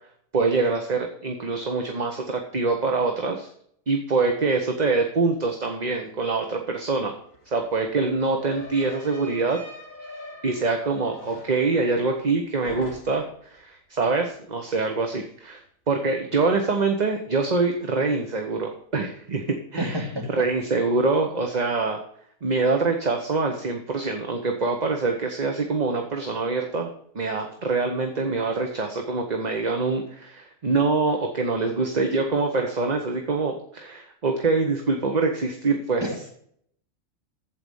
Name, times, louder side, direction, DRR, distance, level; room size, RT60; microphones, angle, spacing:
voice 1, 0.3-3.5 3.9-7.2 7.5-9.6 10.4-15.6 15.9-20.0 20.4-22.0 22.4-36.1, right 3 dB, 35° right, 4 dB, 1.1 m, -25 dB
sound 1, 6.8-6.9 7.1-12.4 12.6-13.4, left 1 dB, 80° left, 4.1 m, -43 dB
voice 2, 19.8-20.5 36.0-36.3, equal, 20° right, 0 dB, 2.5 m, -29 dB
14.5 x 4.9 x 5.4 m, 0.67 s
omnidirectional pair, 1.4 m